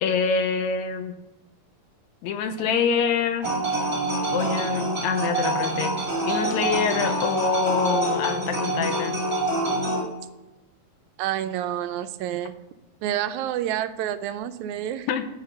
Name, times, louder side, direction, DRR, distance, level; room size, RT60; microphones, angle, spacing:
voice 1, 0.0-1.2 2.2-3.5 4.3-5.9 6.3-9.2 15.1-15.2, left 6 dB, 80° left, 8 dB, 2.0 m, -25 dB
sound 1, 3.4-10.0, right 2 dB, 20° right, 2.4 m, -26 dB
voice 2, 11.2-12.5 13.0-15.1, right 11 dB, 80° right, 10 dB, 1.9 m, -28 dB
7.4 x 6.2 x 7.5 m, 1.0 s
omnidirectional pair, 3.4 m